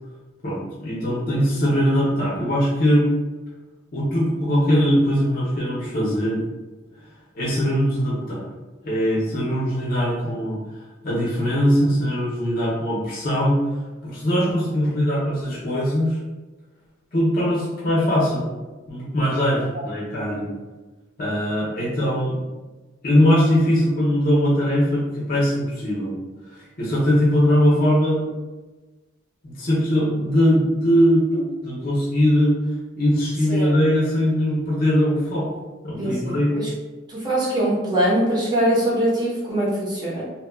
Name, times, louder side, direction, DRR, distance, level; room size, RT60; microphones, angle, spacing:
voice 1, 0.4-3.1 3.9-6.4 7.4-8.4 8.8-10.6 11.0-13.6 14.0-16.2 17.1-18.4 18.9-20.5 21.2-22.4 23.0-26.1 26.5-28.3 29.6-32.6 33.0-35.5 35.8-36.6, equal, 45° left, -7 dB, 0.6 m, -21 dB
voice 2, 36.0-36.7 37.1-40.2, right 1 dB, 20° right, -8 dB, 0.8 m, -22 dB
2.8 x 2.2 x 2.2 m, 1.2 s
head